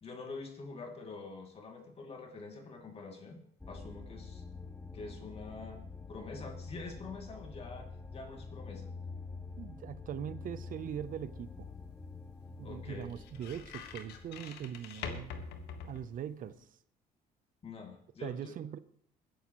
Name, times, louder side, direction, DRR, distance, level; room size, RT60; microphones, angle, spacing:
voice 1, 0.0-3.4 3.7-4.4 4.9-5.8 6.1-8.9 12.6-13.1 17.6-18.6, left 3 dB, 35° left, 2 dB, 2.6 m, -46 dB
sound 1, 3.6-15.5, left 4 dB, 10° left, 0.7 m, -47 dB
voice 2, 9.6-11.7 12.6-15.3 15.9-16.7 18.2-18.8, right 9 dB, 55° right, 15 dB, 0.7 m, -41 dB
sound 2, 10.4-16.6, left 5 dB, 75° left, 1.6 m, -47 dB
21.0 x 10.5 x 3.1 m, 0.64 s
cardioid pair, 110°, 17 cm